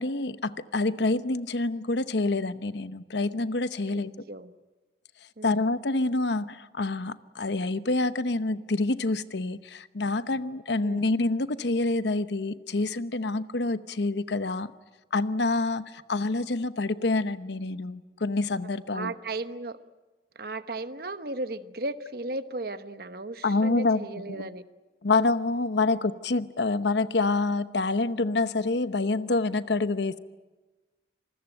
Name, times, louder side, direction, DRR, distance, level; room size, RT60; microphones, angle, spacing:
voice 1, 0.0-4.1 5.4-14.7 15.1-19.1 23.4-24.5 25.0-30.2, left 3 dB, 75° left, 13 dB, 0.9 m, -27 dB
voice 2, 3.9-4.5 5.4-5.8 10.8-11.1 18.9-19.8 20.3-24.6 25.8-25.9, right 2 dB, 55° right, 11 dB, 1.1 m, -36 dB
27.0 x 20.5 x 9.1 m, 1.2 s
head